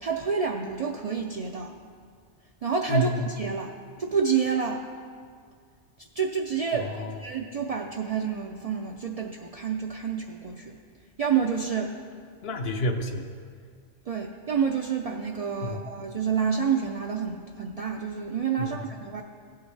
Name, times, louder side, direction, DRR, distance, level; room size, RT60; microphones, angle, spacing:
voice 1, 0.0-1.7 2.6-3.7 4.0-4.8 6.2-6.9 7.2-10.7 11.2-12.0 14.1-19.2, right 6 dB, 70° right, 1 dB, 0.3 m, -28 dB
voice 2, 2.9-3.2 6.7-7.2 12.4-13.3 15.6-15.8 18.6-18.8, equal, 65° left, 5 dB, 0.7 m, -29 dB
16.0 x 5.7 x 3.3 m, 2.1 s
omnidirectional pair, 1.2 m